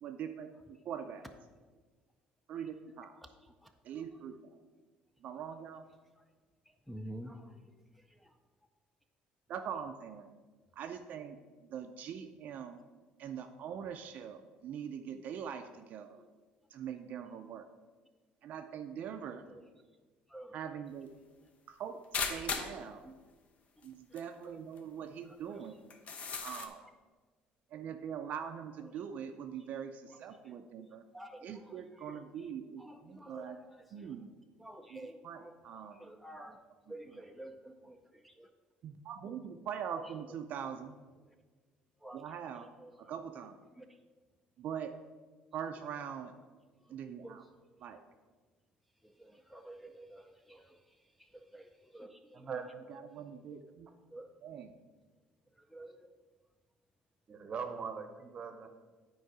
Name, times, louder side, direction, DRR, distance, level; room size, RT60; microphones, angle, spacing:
voice 1, 0.0-0.5 0.8-1.3 2.5-3.2 3.8-4.6 5.2-5.8 9.5-10.3 10.7-11.4 11.7-12.8 13.2-16.2 16.7-17.7 18.4-19.5 20.5-21.1 21.7-23.0 23.8-25.8 26.4-26.8 27.7-31.0 31.4-33.6 33.9-34.3 34.9-36.0 38.8-41.0 42.1-42.7 43.0-43.6 44.6-45.0 45.5-46.3 46.9-47.4 47.8-48.0 52.9-53.9 54.4-54.7, right 8 dB, 55° right, 6 dB, 0.5 m, -42 dB
voice 2, 6.9-7.6 8.1-8.3 19.5-19.6 20.3-20.6 23.0-23.1 24.4-24.6 25.2-25.6 31.1-32.5 32.8-34.1 34.6-36.6 36.9-38.5 42.0-42.2 42.8-43.1 43.7-43.9 47.2-47.4 49.2-50.8 51.2-52.4 54.1-54.3 55.6-56.1, right 1 dB, ahead, 6 dB, 0.5 m, -50 dB
sound 1, 22.1-22.8 23.8-23.9 24.2-24.3 24.8-24.9 25.9-26.7, left 5 dB, 45° left, 0.8 m, -36 dB
voice 3, 57.3-58.7, right 6 dB, 35° right, 7 dB, 0.8 m, -40 dB
9.2 x 4.6 x 4.7 m, 1.4 s
cardioid pair, 130°, 3 cm